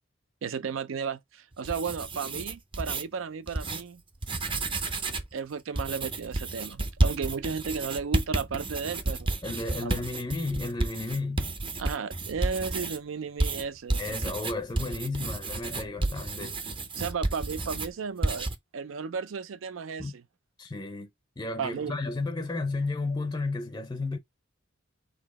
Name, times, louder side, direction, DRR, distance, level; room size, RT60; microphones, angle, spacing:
voice 1, 0.4-4.0 5.3-9.3 9.8-10.0 11.8-14.2 16.9-20.2 21.6-22.0, right 5 dB, 85° right, 0.4 m, -34 dB
sound 1, 1.5-3.0 3.5-3.8 4.1-5.3 5.8-13.0 13.4-17.9 18.2-18.5, right 2 dB, 25° right, 0.6 m, -31 dB
voice 2, 9.4-11.5 14.0-16.6 20.0-20.1 20.6-21.1 21.4-24.2, left 3 dB, 20° left, 0.5 m, -33 dB
4.1 x 2.7 x 4.0 m
head